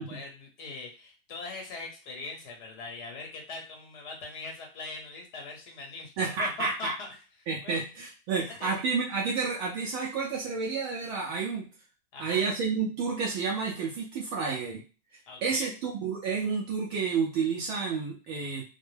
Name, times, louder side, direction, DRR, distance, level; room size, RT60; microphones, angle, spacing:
voice 1, 0.0-7.1 7.6-7.8 8.4-8.7 12.1-12.4 15.3-15.8, left 3 dB, 55° left, 1 dB, 1.1 m, -41 dB
voice 2, 6.2-6.9 7.5-11.6 12.2-14.8 15.4-18.6, right 5 dB, 25° right, -3 dB, 0.4 m, -30 dB
2.2 x 2.1 x 3.2 m, 0.35 s
supercardioid pair, 160°, 30 cm